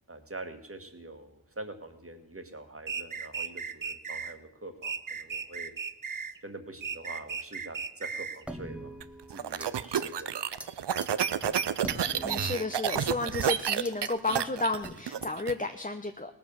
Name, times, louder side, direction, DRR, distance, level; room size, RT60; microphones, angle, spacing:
voice 1, 0.1-5.7 6.4-9.0 9.3-10.4, right 2 dB, 35° right, 7 dB, 1.7 m, -44 dB
sound 1, 2.9-4.3 4.8-6.4 6.8-8.4, right 6 dB, 50° right, 0.8 m, -36 dB
sound 2, 8.5-9.7 9.9-10.2 10.6-10.7 11.0-11.1 11.4-13.1 13.4-14.2 14.8-15.2, right 1 dB, 5° right, 1.1 m, -43 dB
sound 3, 9.0-15.5, right 8 dB, 90° right, 0.6 m, -30 dB
voice 2, 12.2-16.3, left 2 dB, 20° left, 7 dB, 0.8 m, -32 dB
18.0 x 7.2 x 7.1 m, 0.89 s
wide cardioid pair, 40°, 40 cm